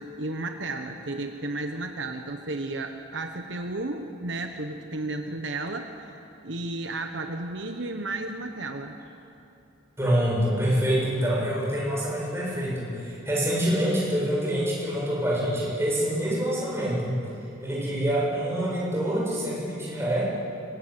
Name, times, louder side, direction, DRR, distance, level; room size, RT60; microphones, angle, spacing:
voice 1, 0.0-6.1 6.4-9.0, right 2 dB, 65° right, 5 dB, 1.3 m, -33 dB
voice 2, 10.0-17.2 17.6-20.2, equal, 15° right, -5 dB, 7.6 m, -26 dB
25.0 x 19.5 x 8.9 m, 2.8 s
head